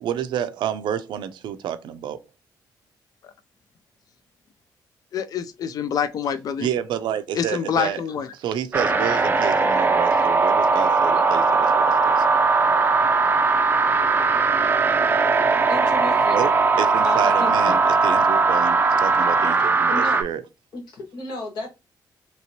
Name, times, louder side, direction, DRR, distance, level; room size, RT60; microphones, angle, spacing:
voice 1, 0.0-2.2 6.6-8.0 8.4-12.2 16.3-16.5 16.8-20.4, right 9 dB, 85° right, 0.4 m, -29 dB
voice 2, 5.1-6.7 7.3-8.3, left 7 dB, 50° left, 0.4 m, -26 dB
sound 1, 8.7-20.2, right 4 dB, 25° right, 0.4 m, -19 dB
voice 3, 15.7-16.4 17.0-17.9 19.9-20.2 20.7-21.7, left 2 dB, 75° left, 1.5 m, -33 dB
2.9 x 2.8 x 2.8 m
cardioid pair, 120°, 8 cm